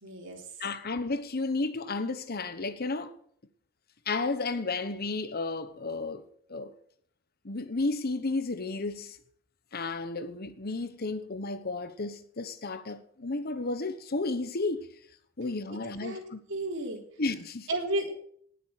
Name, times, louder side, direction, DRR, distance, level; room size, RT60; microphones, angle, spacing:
voice 1, 0.0-0.5 16.0-16.2 16.5-17.0 17.7-18.1, right 1 dB, 60° right, 3.8 m, -32 dB
voice 2, 0.6-3.1 4.1-6.7 7.4-9.2 9.7-14.9 15.4-16.4 17.2-17.7, left 3 dB, 45° left, 1.0 m, -32 dB
19.0 x 7.0 x 7.8 m
head